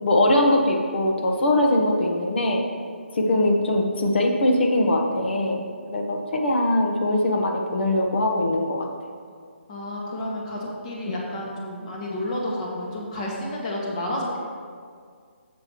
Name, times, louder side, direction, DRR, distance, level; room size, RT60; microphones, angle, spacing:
voice 1, 0.0-2.6 3.1-5.6 5.9-8.9 11.0-11.1, left 1 dB, 60° left, 2 dB, 1.3 m, -21 dB
voice 2, 9.7-14.4, left 1 dB, 30° left, -3 dB, 1.8 m, -30 dB
10.5 x 7.6 x 3.1 m, 2.1 s
hypercardioid pair, 155°, 7 cm